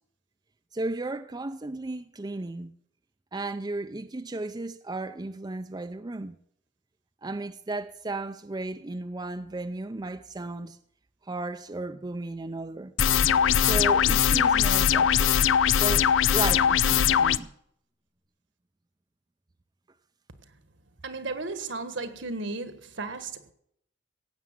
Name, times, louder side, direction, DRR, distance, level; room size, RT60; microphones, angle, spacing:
voice 1, 0.7-2.7 3.3-6.4 7.2-10.8 11.2-12.9 13.6-15.4 15.7-17.5, right 2 dB, 20° right, 0.5 m, -34 dB
sound 1, 13.0-17.4, left 8 dB, 80° left, 0.5 m, -21 dB
voice 2, 21.0-23.5, right 3 dB, 65° right, 1.5 m, -35 dB
16.5 x 8.4 x 7.4 m
head